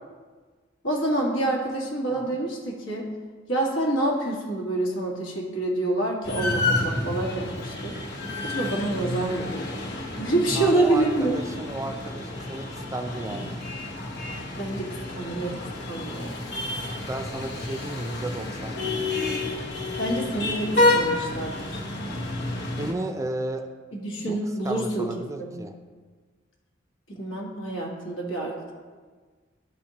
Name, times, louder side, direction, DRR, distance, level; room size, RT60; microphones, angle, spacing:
voice 1, 0.8-3.1 3.5-8.0 8.4-9.7 10.2-11.3 13.3-13.4 14.6-15.5 15.8-16.4 20.0-21.8 23.9-25.1 25.4-25.6 27.1-28.7, right 2 dB, 75° left, -2 dB, 1.6 m, -27 dB
sound 1, 6.2-22.9, left 2 dB, 60° left, 1.1 m, -29 dB
voice 2, 10.5-13.6 17.0-18.7 22.7-23.7 24.3-24.4 24.6-25.7, right 1 dB, 15° right, 5 dB, 0.4 m, -33 dB
12.5 x 4.3 x 2.9 m, 1.5 s
head